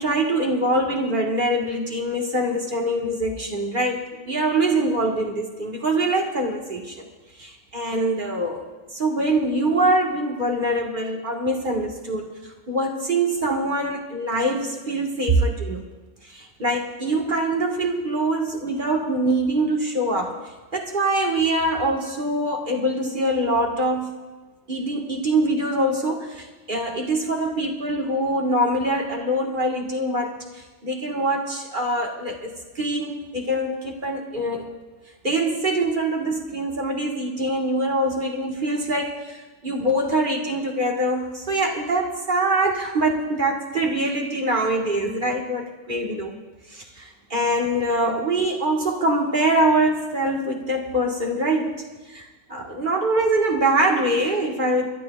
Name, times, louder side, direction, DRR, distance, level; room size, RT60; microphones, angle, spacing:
voice 1, 0.0-4.0 4.2-7.1 7.4-8.6 8.9-15.8 16.2-20.4 20.7-24.1 24.7-34.7 35.2-46.4 46.7-52.2 52.5-54.9, right 1 dB, 45° right, 0 dB, 1.7 m, -24 dB
27.5 x 12.0 x 2.3 m, 1.2 s
omnidirectional pair, 1.2 m